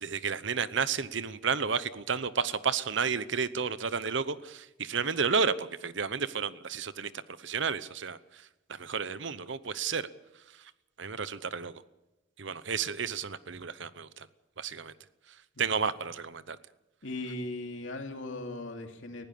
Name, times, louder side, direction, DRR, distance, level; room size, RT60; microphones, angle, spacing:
voice 1, 0.0-7.1 7.4-10.1 10.6-10.7 11.0-11.8 12.4-14.3 14.6-14.9 15.6-16.6, right 5 dB, 65° right, 15 dB, 0.9 m, -32 dB
voice 2, 17.0-19.3, left 2 dB, 70° left, 4 dB, 2.8 m, -38 dB
20.0 x 16.0 x 8.5 m, 0.99 s
head